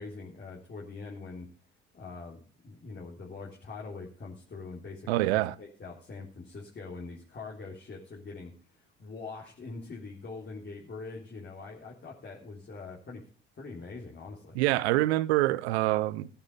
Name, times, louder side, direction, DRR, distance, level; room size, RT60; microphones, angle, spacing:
voice 1, 0.0-1.5 1.9-5.3 5.6-13.2 13.6-14.6, left 4 dB, 35° left, 3.5 m, -43 dB
voice 2, 5.1-5.5 14.5-16.3, right 17 dB, 75° right, 0.8 m, -26 dB
15.5 x 7.3 x 5.6 m
hypercardioid pair, 60°, 32 cm